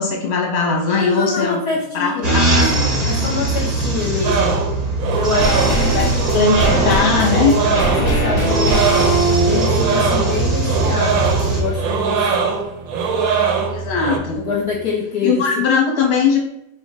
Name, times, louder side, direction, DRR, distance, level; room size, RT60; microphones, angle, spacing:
voice 1, 0.0-1.6 1.9-2.5 5.9-7.5 13.7-14.5 15.2-16.5, left 5 dB, 45° left, 0 dB, 1.0 m, -19 dB
voice 2, 0.9-4.6 5.1-9.1 9.4-12.4 14.4-15.6, left 4 dB, 70° left, -1 dB, 1.0 m, -26 dB
sound 1, 2.2-11.6, right 2 dB, 45° right, 0.5 m, -21 dB
sound 2, 4.2-14.2, right 5 dB, 70° right, 0.9 m, -21 dB
sound 3, 5.1-14.5 14.7-14.8, right 1 dB, 25° left, 0.7 m, -23 dB
3.5 x 2.4 x 4.2 m, 0.79 s
omnidirectional pair, 2.0 m